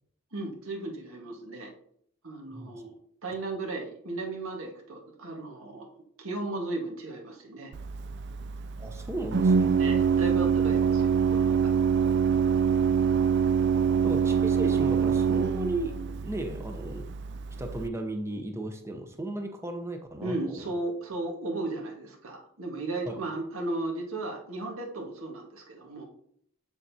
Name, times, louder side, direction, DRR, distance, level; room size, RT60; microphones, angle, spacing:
voice 1, 0.3-1.7 2.2-2.9 3.2-5.9 6.2-7.7 9.8-11.7 20.2-26.1, right 2 dB, 80° right, 1.7 m, -35 dB
voice 2, 2.5-2.8 8.8-9.8 14.0-16.0 16.2-17.0 17.6-20.6 23.1-23.2, right 1 dB, 15° right, 0.7 m, -35 dB
Organ, 7.7-17.9, right 6 dB, 55° right, 0.3 m, -25 dB
7.4 x 6.8 x 2.8 m
head